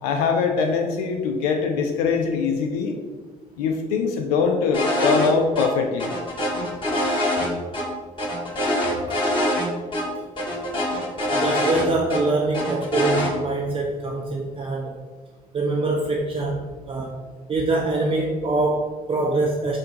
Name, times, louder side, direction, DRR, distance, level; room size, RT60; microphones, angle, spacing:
voice 1, 0.0-3.0 3.6-6.1, left 5 dB, 70° left, 4 dB, 0.4 m, -22 dB
sound 1, 4.7-5.3 5.5-5.7 6.0-7.8 8.2-9.7 9.9-10.0 10.4-12.2 12.5-13.3, left 1 dB, 25° left, 1.5 m, -24 dB
voice 2, 11.3-14.9 15.5-17.2 17.5-19.8, right 2 dB, 30° right, 0 dB, 0.5 m, -24 dB
4.2 x 2.5 x 4.0 m, 1.4 s
figure-of-eight pair, 50°, 20 cm